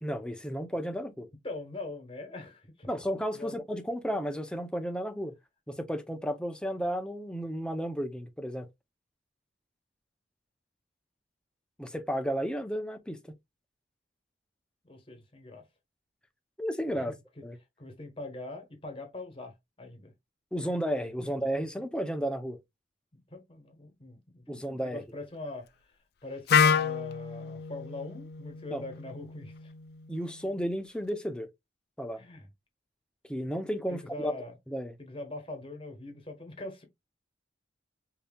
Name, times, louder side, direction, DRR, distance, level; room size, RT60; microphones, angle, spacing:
voice 1, 0.0-1.3 2.9-5.3 5.7-8.7 11.8-13.2 16.6-17.1 17.4-17.6 20.5-22.6 24.5-25.0 28.7-28.8 30.1-31.5 32.0-32.2 33.3-34.3 34.7-34.9, equal, 5° left, 0.5 m, -33 dB
voice 2, 1.4-2.9 3.3-3.5 14.8-15.7 16.9-17.4 17.8-20.1 23.1-25.7 26.2-29.7 32.1-32.5 33.9-34.6 35.0-36.8, left 2 dB, 30° left, 1.1 m, -42 dB
Wind instrument woodwind instrument, 26.5-30.4, left 6 dB, 55° left, 0.4 m, -29 dB
5.3 x 2.8 x 2.2 m
head